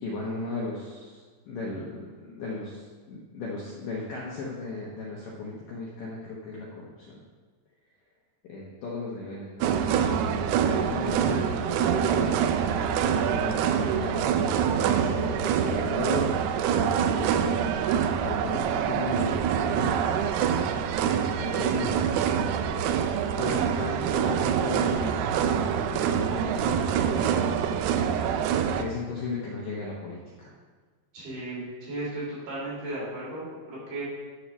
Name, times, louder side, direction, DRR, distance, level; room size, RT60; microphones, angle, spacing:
voice 1, 0.0-1.2 1.5-7.2 8.4-9.7 10.1-16.4 16.7-19.4 19.7-20.6 21.0-21.9 23.4-27.6 28.8-30.5, left 3 dB, 75° left, -4 dB, 2.0 m, -36 dB
sound 1, 9.6-28.8, right 8 dB, 85° right, 2.4 m, -25 dB
voice 2, 31.1-34.0, right 1 dB, 65° right, -8 dB, 5.1 m, -35 dB
10.5 x 4.2 x 6.1 m, 1.5 s
omnidirectional pair, 5.0 m